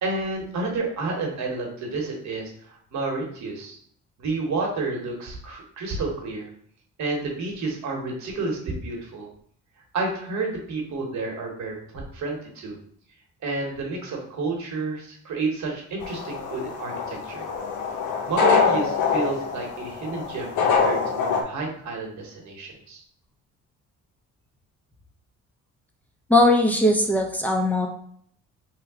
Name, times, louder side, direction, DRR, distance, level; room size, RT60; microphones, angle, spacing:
voice 1, 0.0-3.8 4.2-6.5 7.0-9.3 9.9-12.8 13.4-17.5 18.3-23.0, right 3 dB, 65° right, 0 dB, 1.1 m, -30 dB
sound 1, 16.0-21.4, left 5 dB, 80° left, 0.6 m, -24 dB
voice 2, 26.3-27.9, left 1 dB, 5° left, 2 dB, 0.6 m, -19 dB
3.1 x 2.2 x 3.5 m, 0.62 s
cardioid pair, 90°, 30 cm